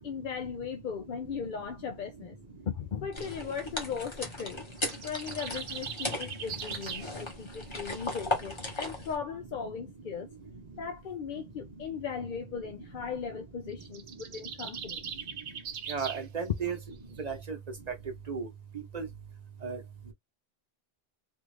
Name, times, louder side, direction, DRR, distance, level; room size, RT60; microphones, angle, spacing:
voice 1, 0.0-2.4 2.7-4.7 5.0-10.3 10.8-15.1, left 6 dB, 60° left, 0.6 m, -38 dB
sound 1, 3.1-9.2, left 2 dB, 30° left, 1.0 m, -37 dB
sound 2, 4.8-7.1 13.7-16.3, right 7 dB, 90° right, 0.9 m, -40 dB
voice 2, 15.9-16.8 17.2-17.6 18.3-18.5 18.9-19.0 19.6-19.8, right 6 dB, 40° right, 1.0 m, -33 dB
3.5 x 2.5 x 3.2 m
omnidirectional pair, 1.0 m